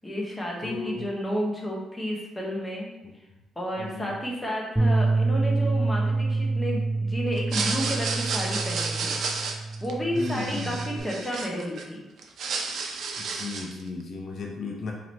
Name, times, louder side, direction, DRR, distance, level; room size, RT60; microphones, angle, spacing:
voice 1, 0.0-2.9 3.6-9.1 9.8-12.0, equal, 10° left, -2 dB, 1.0 m, -31 dB
voice 2, 0.6-1.1 3.8-4.2 10.1-10.8 13.2-14.9, left 3 dB, 55° left, 0 dB, 0.6 m, -35 dB
Bass guitar, 4.8-11.0, right 3 dB, 5° right, 0.5 m, -27 dB
sound 1, 7.4-11.8 12.2-13.8, right 4 dB, 65° right, 0.5 m, -31 dB
3.0 x 2.9 x 4.1 m, 0.97 s
cardioid pair, 90°, 0 cm